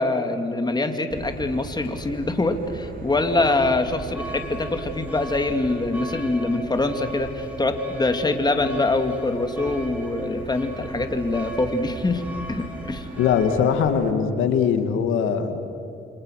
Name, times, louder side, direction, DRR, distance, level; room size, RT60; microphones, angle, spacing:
voice 1, 0.0-12.2 12.5-13.1, left 2 dB, 20° left, 7 dB, 2.5 m, -24 dB
Motor vehicle (road), 1.1-14.1, right 4 dB, 45° right, 3.4 m, -40 dB
sound 1, 3.1-13.6, equal, 5° right, 4.6 m, -39 dB
voice 2, 13.2-15.6, left 7 dB, 90° left, 8 dB, 2.1 m, -21 dB
29.0 x 25.5 x 6.5 m, 2.7 s
cardioid pair, 90°, 20 cm